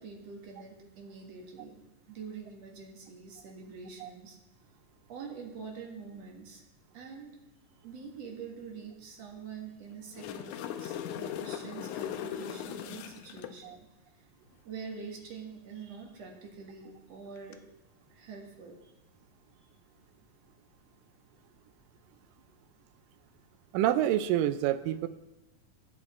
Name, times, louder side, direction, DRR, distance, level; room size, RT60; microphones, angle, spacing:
voice 1, 0.0-4.4 5.1-6.6 6.9-7.4 7.8-13.9 14.1-14.3 14.6-17.6 18.1-18.9, right 5 dB, 55° right, 0 dB, 2.5 m, -45 dB
sound 1, 9.9-13.5 17.4-17.5, left 10 dB, 80° left, 1.9 m, -38 dB
voice 2, 23.7-25.1, right 12 dB, 85° right, 11 dB, 2.3 m, -27 dB
15.0 x 8.4 x 4.3 m, 1.0 s
omnidirectional pair, 3.9 m